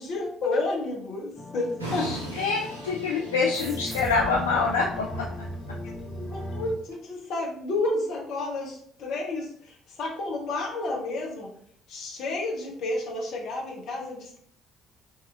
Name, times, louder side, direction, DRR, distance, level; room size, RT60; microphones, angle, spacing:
voice 1, 0.0-1.7 1.9-2.0 5.8-11.5 11.9-14.4, left 2 dB, 55° left, -1 dB, 0.9 m, -31 dB
sound 1, 1.4-6.8, left 2 dB, 25° left, 0.6 m, -38 dB
sound 2, 1.8-6.9, right 2 dB, 85° right, 0.5 m, -40 dB
voice 2, 2.0-5.1, left 4 dB, 80° left, -2 dB, 0.3 m, -26 dB
sound 3, 3.5-6.6, right 2 dB, 25° right, 0.5 m, -42 dB
3.7 x 2.9 x 2.4 m, 0.65 s
figure-of-eight pair, 50°, 0 cm